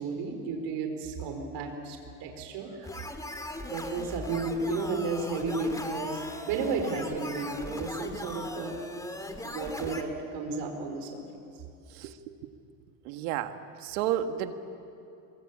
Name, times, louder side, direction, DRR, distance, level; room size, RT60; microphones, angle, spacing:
voice 1, 0.0-2.9 3.7-8.7 9.4-11.2, right 3 dB, 65° right, 4 dB, 4.6 m, -33 dB
sound 1, 2.8-10.0, left 1 dB, 5° left, 2.2 m, -39 dB
voice 2, 13.1-13.6 13.8-14.5, right 11 dB, 80° right, 8 dB, 1.8 m, -31 dB
27.0 x 23.5 x 8.7 m, 2.6 s
supercardioid pair, 110°, 45 cm